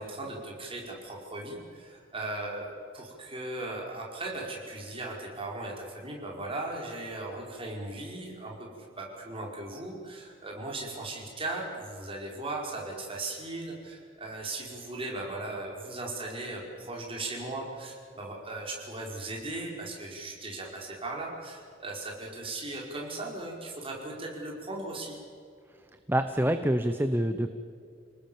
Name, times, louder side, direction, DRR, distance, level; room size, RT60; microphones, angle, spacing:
voice 1, 0.0-2.7 2.9-25.2, right 2 dB, 25° right, -1 dB, 5.3 m, -38 dB
voice 2, 26.1-27.5, right 1 dB, 10° right, 8 dB, 0.8 m, -26 dB
29.5 x 19.5 x 7.3 m, 2.4 s
head